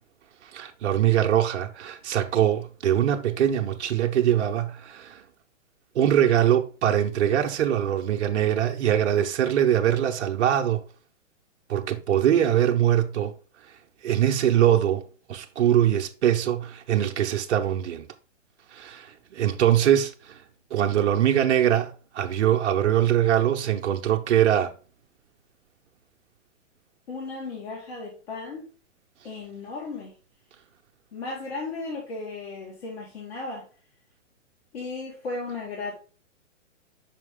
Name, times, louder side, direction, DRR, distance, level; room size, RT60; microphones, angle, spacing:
voice 1, 0.5-5.2 5.9-10.8 11.7-13.3 14.0-15.0 15.3-18.1 18.7-20.4 20.7-24.7, right 10 dB, 65° right, 0.8 m, -22 dB
voice 2, 27.1-28.7 29.2-30.1 31.1-33.7 34.7-36.0, left 3 dB, 55° left, 2.0 m, -35 dB
5.9 x 4.6 x 3.6 m
hypercardioid pair, 135°, 37 cm